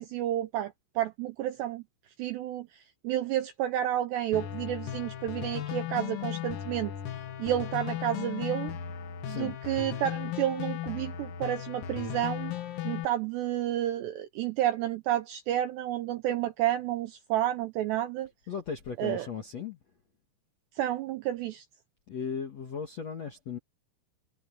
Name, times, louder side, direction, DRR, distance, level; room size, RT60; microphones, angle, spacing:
voice 1, 0.0-1.8 2.2-8.7 9.3-12.5 12.8-18.3 19.0-19.3 20.8-21.6, right 12 dB, 80° right, 2.5 m, -31 dB
sound 1, 4.3-13.1, left 11 dB, 90° left, 5.0 m, -36 dB
voice 2, 9.2-9.6 18.5-19.8 22.1-23.6, left 6 dB, 55° left, 1.8 m, -36 dB
omnidirectional pair, 5.9 m